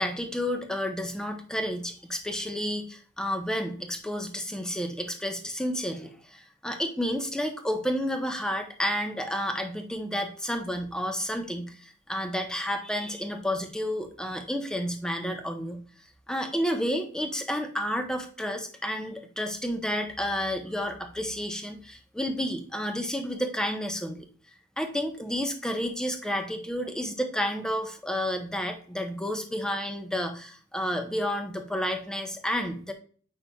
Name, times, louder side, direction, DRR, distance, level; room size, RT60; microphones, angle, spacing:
voice 1, 0.0-15.8 16.3-24.3 24.8-32.9, equal, 5° left, 5 dB, 0.8 m, -31 dB
8.2 x 5.6 x 2.3 m, 0.43 s
head